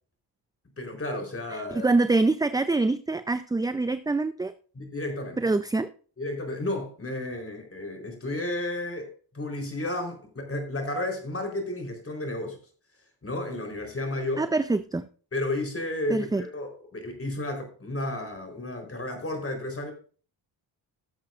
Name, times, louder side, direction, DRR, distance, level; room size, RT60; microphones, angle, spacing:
voice 1, 0.8-1.9 4.7-5.5 6.2-12.6 13.2-14.5 15.3-19.9, left 1 dB, 30° left, 3.9 m, -32 dB
voice 2, 1.5-4.5 5.4-5.9 14.4-15.0 16.1-16.4, right 3 dB, 10° right, 0.4 m, -25 dB
16.5 x 7.4 x 2.5 m
cardioid pair, 65°, 46 cm